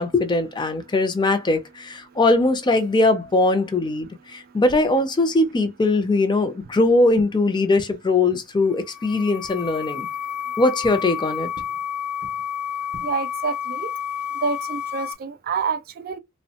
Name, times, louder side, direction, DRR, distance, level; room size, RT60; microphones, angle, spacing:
voice 1, 0.0-10.1 10.6-11.5, left 2 dB, 20° left, 0.4 m, -20 dB
sound 1, 8.6-15.1, left 8 dB, 75° left, 0.7 m, -30 dB
voice 2, 12.9-13.9 14.4-16.2, right 5 dB, 45° right, 0.4 m, -28 dB
3.0 x 2.1 x 2.7 m
head